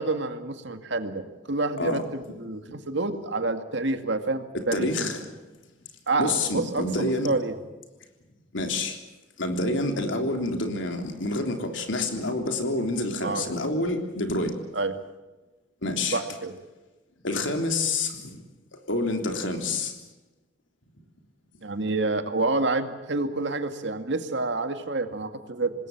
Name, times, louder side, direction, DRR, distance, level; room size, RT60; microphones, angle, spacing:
voice 1, 0.0-5.1 6.1-7.5 13.2-13.5 14.7-14.9 16.1-16.6 21.6-25.7, right 3 dB, 70° right, 7 dB, 2.2 m, -28 dB
voice 2, 4.7-5.2 6.2-7.3 8.5-9.0 9.4-14.5 15.8-16.2 17.2-18.2 18.9-19.9, left 2 dB, 80° left, 5 dB, 3.5 m, -27 dB
26.5 x 20.0 x 7.4 m, 1.1 s
head